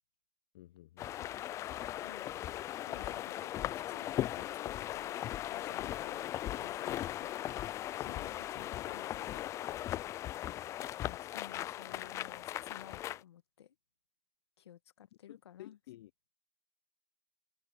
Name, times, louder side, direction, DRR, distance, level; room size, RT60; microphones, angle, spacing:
voice 1, 0.5-1.3 5.9-6.0 8.0-8.2 15.3-16.1, left 15 dB, 65° left, 0.7 m, -54 dB
sound 1, 1.0-13.2, left 13 dB, 20° left, 0.3 m, -38 dB
voice 2, 2.0-7.4 8.0-10.0 11.0-13.7 14.6-15.8, left 10 dB, 85° left, 1.6 m, -55 dB
hypercardioid pair, 135°, 13 cm